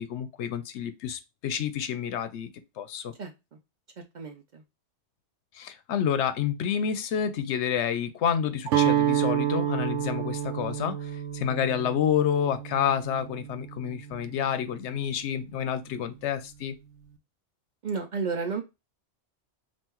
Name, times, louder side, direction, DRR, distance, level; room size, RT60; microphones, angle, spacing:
voice 1, 0.0-2.5 2.8-3.1 5.5-16.8, left 8 dB, 80° left, 0.9 m, -29 dB
voice 2, 3.2-3.6 4.0-4.6 17.8-18.6, right 5 dB, 50° right, 0.6 m, -33 dB
Guitar, 8.7-14.7, right 11 dB, 90° right, 1.0 m, -29 dB
5.5 x 2.5 x 3.0 m
omnidirectional pair, 1.2 m